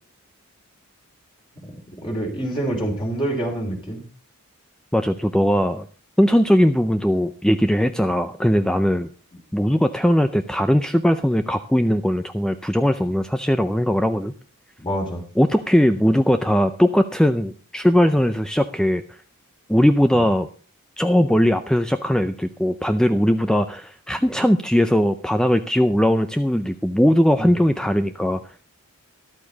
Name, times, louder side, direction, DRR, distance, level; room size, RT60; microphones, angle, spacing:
voice 1, 1.6-4.0 14.8-15.2 27.4-27.5, right 1 dB, 20° left, 1 dB, 3.1 m, -27 dB
voice 2, 4.9-5.9 6.2-9.1 9.5-14.3 15.4-19.2 19.7-20.5 21.0-28.4, equal, 5° left, 9 dB, 0.5 m, -19 dB
13.5 x 12.0 x 4.0 m, 0.37 s
head